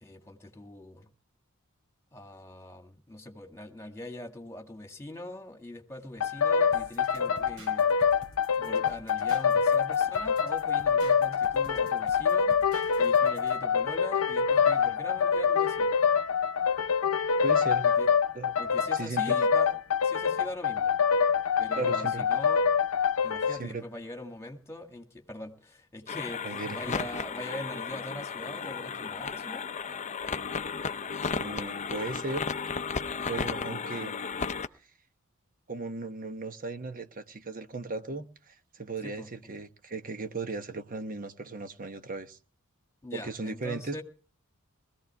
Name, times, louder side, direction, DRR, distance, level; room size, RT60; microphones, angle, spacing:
voice 1, 0.0-1.1 2.1-7.9 8.6-12.6 13.0-16.0 17.8-18.1 18.6-21.0 21.6-22.6 23.2-29.7 39.0-39.5 43.0-44.0, left 1 dB, 15° left, 2.0 m, -42 dB
sound 1, 6.2-23.6, left 6 dB, 90° left, 0.6 m, -25 dB
sound 2, 6.7-13.6, right 1 dB, 85° right, 4.0 m, -51 dB
voice 2, 17.4-17.9 18.3-18.5 18.9-19.4 21.7-22.3 23.5-23.8 26.4-27.1 31.3-32.4 33.3-34.1 35.7-42.4 43.1-44.0, right 3 dB, 40° right, 1.1 m, -37 dB
sound 3, 26.1-34.7, left 5 dB, 35° left, 0.6 m, -34 dB
20.5 x 15.0 x 3.5 m
head